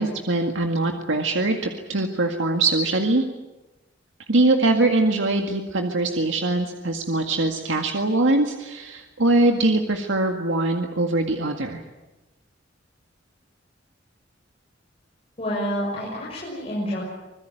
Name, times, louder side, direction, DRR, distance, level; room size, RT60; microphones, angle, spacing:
voice 1, 0.0-3.2 4.3-11.8, right 2 dB, 85° right, 4 dB, 2.0 m, -22 dB
voice 2, 15.4-17.0, equal, 30° left, -5 dB, 6.6 m, -28 dB
26.0 x 21.0 x 9.3 m, 1.1 s
head